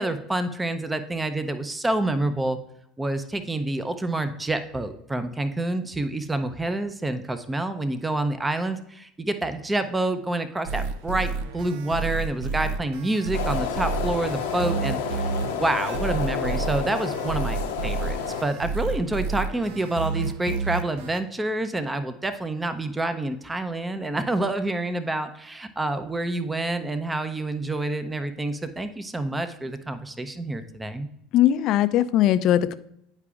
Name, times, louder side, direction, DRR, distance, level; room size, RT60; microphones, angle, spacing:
voice 1, 0.0-2.6 3.0-31.1, right 2 dB, 15° right, 10 dB, 0.5 m, -28 dB
sound 1, 10.6-21.2, right 4 dB, 80° right, 0.4 m, -30 dB
sound 2, 13.3-18.4, left 6 dB, 90° left, 0.8 m, -30 dB
voice 2, 31.3-32.7, left 12 dB, 55° left, 13 dB, 0.4 m, -20 dB
9.9 x 4.8 x 2.4 m, 0.75 s
supercardioid pair, 100°, 0 cm